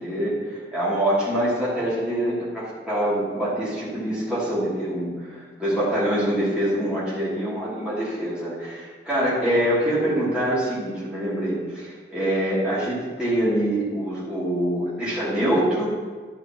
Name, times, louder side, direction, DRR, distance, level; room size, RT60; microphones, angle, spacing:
voice 1, 0.0-15.9, right 1 dB, 5° right, -11 dB, 3.0 m, -25 dB
12.0 x 8.9 x 3.1 m, 1.4 s
head